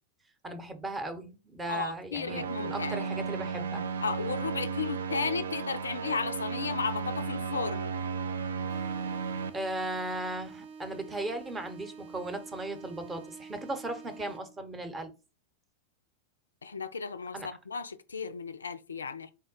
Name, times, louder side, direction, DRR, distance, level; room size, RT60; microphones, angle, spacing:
voice 1, 0.4-3.8 9.5-15.1 17.3-17.5, right 2 dB, 15° right, 0.8 m, -37 dB
voice 2, 1.7-3.1 4.0-8.0 16.6-19.3, left 5 dB, 75° left, 0.3 m, -34 dB
sound 1, 2.2-9.5, right 5 dB, 65° right, 0.3 m, -34 dB
sound 2, 8.7-14.7, right 5 dB, 50° right, 0.8 m, -48 dB
3.6 x 2.1 x 4.0 m
figure-of-eight pair, 90°, 0 cm